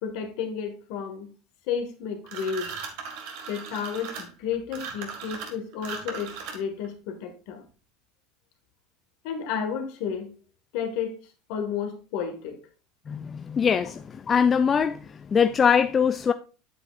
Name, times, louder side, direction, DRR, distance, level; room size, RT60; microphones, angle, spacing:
voice 1, 0.0-1.3 1.7-2.8 3.5-7.6 9.2-10.4 10.7-12.6, left 7 dB, 65° left, 1.8 m, -32 dB
sound 1, 2.3-6.9, right 6 dB, 65° right, 1.8 m, -38 dB
voice 2, 13.1-15.0 15.3-16.3, left 7 dB, 30° left, 0.4 m, -22 dB
8.4 x 8.0 x 2.5 m
hypercardioid pair, 90°, 0 cm